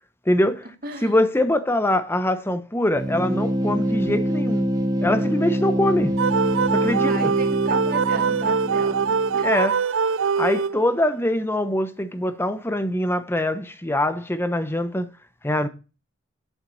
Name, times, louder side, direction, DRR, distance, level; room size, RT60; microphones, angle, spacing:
voice 1, 0.3-0.7 1.0-4.7 5.0-6.2 6.7-7.3 9.4-9.8 10.4-15.1 15.4-15.7, left 1 dB, 10° left, 0.9 m, -23 dB
voice 2, 0.8-1.2 7.1-9.5 10.2-10.3, right 2 dB, 50° right, 2.2 m, -34 dB
sound 1, 3.0-9.6, equal, 20° right, 1.3 m, -25 dB
sound 2, 6.2-11.1, right 6 dB, 75° right, 0.4 m, -23 dB
8.3 x 6.6 x 5.6 m
head